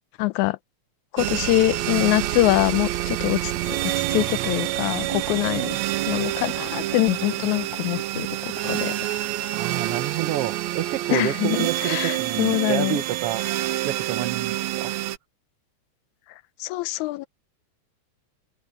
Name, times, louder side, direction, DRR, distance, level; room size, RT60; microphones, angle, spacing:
voice 1, 0.2-0.6 1.1-3.8 4.1-5.8 6.1-8.9 11.1-13.0 16.6-17.3, left 18 dB, 90° left, 2.0 m, -24 dB
sound 1, 1.2-15.2, right 15 dB, 80° right, 2.0 m, -27 dB
voice 2, 5.5-5.8 9.5-13.4 13.8-14.9, right 12 dB, 60° right, 1.9 m, -29 dB
open air
omnidirectional pair, 3.3 m